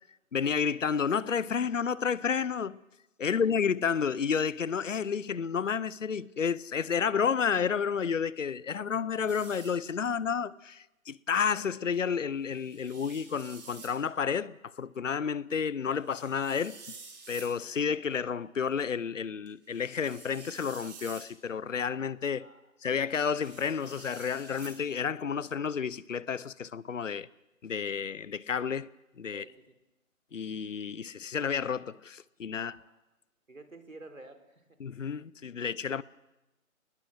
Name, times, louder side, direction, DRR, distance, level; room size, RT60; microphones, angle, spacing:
voice 1, 0.3-2.8 3.2-16.8 17.3-22.5 22.8-27.3 27.6-28.9 29.2-29.4 30.3-32.7 34.8-36.0, left 6 dB, 65° left, 0.8 m, -31 dB
sound 1, 9.3-9.8 11.9-12.0 12.5-14.0 15.9-17.5 18.7-18.8 19.5-21.3 23.3-24.8, right 5 dB, 30° right, 5.6 m, -49 dB
voice 2, 29.3-29.7 32.6-33.0 33.5-34.6, right 2 dB, 75° right, 4.2 m, -50 dB
26.0 x 20.5 x 7.7 m
figure-of-eight pair, 150°, 41 cm